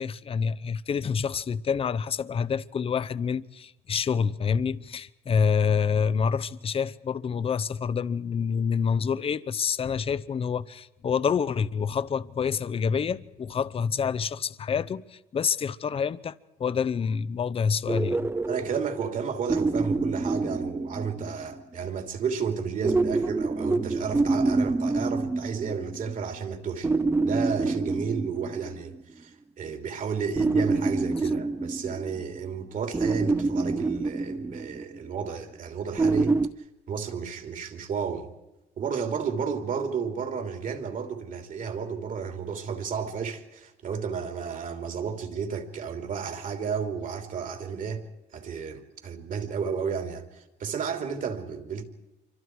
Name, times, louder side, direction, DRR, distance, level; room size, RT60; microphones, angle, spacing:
voice 1, 0.0-16.3 16.6-18.3, left 6 dB, 35° left, 0.8 m, -27 dB
sound 1, 17.9-21.5 22.8-26.1 26.8-29.0 30.4-32.5 32.9-35.0 36.0-36.5, right 3 dB, 15° right, 0.7 m, -27 dB
voice 2, 18.5-26.9 27.2-36.4 36.9-38.3 38.8-48.1 48.3-51.8, right 6 dB, 50° right, 3.2 m, -32 dB
27.0 x 25.0 x 4.7 m
cardioid pair, 110°, 17 cm